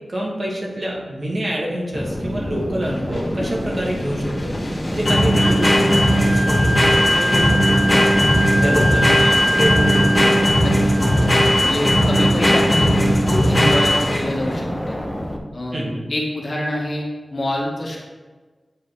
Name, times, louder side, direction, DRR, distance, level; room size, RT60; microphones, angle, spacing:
voice 1, 0.0-8.1 8.6-10.3 15.7-16.0, right 1 dB, 45° right, -3 dB, 1.5 m, -27 dB
sound 1, 1.9-15.4, equal, 10° left, 0.7 m, -27 dB
sound 2, 2.8-14.4, equal, 35° left, 1.8 m, -17 dB
Wind instrument woodwind instrument, 5.4-11.6, equal, 25° right, 1.2 m, -24 dB
voice 2, 8.6-8.9 10.6-11.3 11.6-15.0 15.5-15.8 16.1-17.0 17.3-18.0, left 1 dB, 50° left, -3 dB, 1.5 m, -26 dB
8.4 x 3.9 x 3.4 m, 1.3 s
wide cardioid pair, 75°, 0 cm